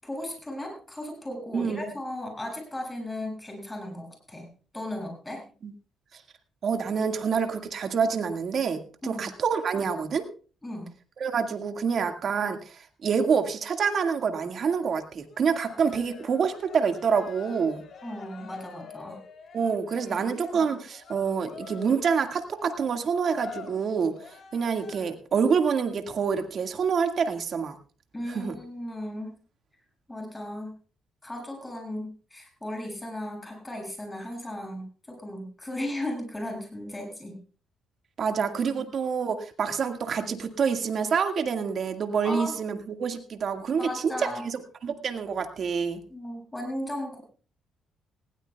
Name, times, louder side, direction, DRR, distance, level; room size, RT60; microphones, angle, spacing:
voice 1, 0.0-4.5 4.7-5.4 9.0-9.3 10.6-10.9 18.0-19.2 20.0-20.3 28.1-29.3 30.1-30.7 31.2-37.4 38.8-38.9 42.2-42.6 43.8-44.4 46.1-47.2, left 1 dB, 15° left, 2 dB, 7.1 m, -36 dB
voice 2, 1.5-1.9 5.6-5.7 6.6-10.2 11.2-17.8 19.5-24.1 24.5-27.8 28.3-28.5 38.2-46.0, right 6 dB, 55° right, 6 dB, 1.8 m, -27 dB
Cheering, 15.3-25.4, left 6 dB, 60° left, 2.9 m, -46 dB
19.5 x 16.5 x 2.3 m, 0.37 s
cardioid pair, 90°, 0 cm